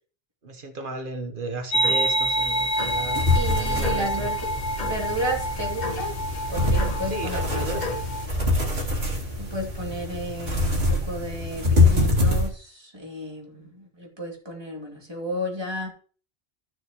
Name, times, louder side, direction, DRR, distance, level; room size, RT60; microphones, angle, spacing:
voice 1, 0.4-4.3 7.1-8.0, right 2 dB, 55° right, 6 dB, 1.4 m, -34 dB
sound 1, 1.7-8.3, equal, 45° left, 1.2 m, -27 dB
Small Creature Scamper on Carpet, 2.8-12.5, left 2 dB, 75° right, 2.5 m, -25 dB
voice 2, 3.3-4.5 4.8-6.1 6.5-7.9 9.4-15.9, equal, 25° right, -1 dB, 2.5 m, -33 dB
13.5 x 6.5 x 3.0 m, 0.41 s
omnidirectional pair, 1.0 m